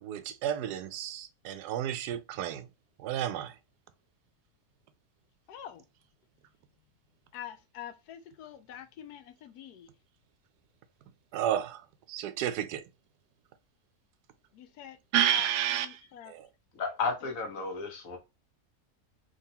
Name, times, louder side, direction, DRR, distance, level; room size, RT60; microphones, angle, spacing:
voice 1, 0.0-2.7 3.0-3.5 11.3-11.8 12.1-12.8 15.1-16.0 16.3-16.5, right 10 dB, 90° right, 1.1 m, -31 dB
voice 2, 5.5-5.9 7.3-9.9 14.5-15.0 15.3-16.3, left 10 dB, 80° left, 1.1 m, -46 dB
voice 3, 16.7-18.2, left 4 dB, 60° left, 1.3 m, -33 dB
3.7 x 3.0 x 2.8 m
omnidirectional pair, 1.7 m